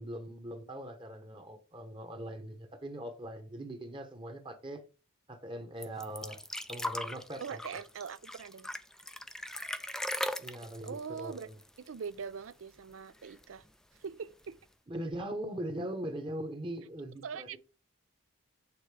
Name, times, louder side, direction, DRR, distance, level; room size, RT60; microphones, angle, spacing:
voice 1, 0.0-4.8 5.3-6.4 6.7-7.6 10.4-11.6 14.9-17.6, right 1 dB, 25° right, 1.0 m, -41 dB
sound 1, 5.8-12.2 12.5-12.6 12.9-13.6 14.4-14.5, left 1 dB, 5° left, 0.3 m, -39 dB
voice 2, 7.4-8.7 10.8-11.5 11.8-13.6 14.0-14.6 17.2-17.6, right 6 dB, 80° right, 0.4 m, -42 dB
8.6 x 3.8 x 4.9 m
head